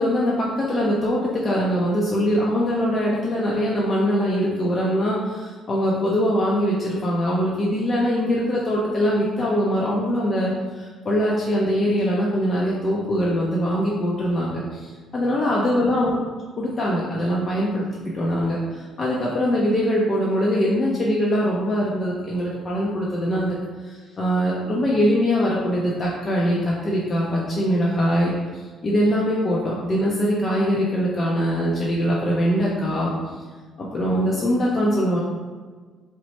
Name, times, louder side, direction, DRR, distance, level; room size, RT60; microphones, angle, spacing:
voice 1, 0.0-16.2 16.6-17.9 18.1-23.6 23.8-28.3 28.8-33.1 33.8-35.2, equal, 40° left, -5 dB, 0.5 m, -22 dB
2.9 x 2.0 x 3.0 m, 1.4 s
supercardioid pair, 80°, 0 cm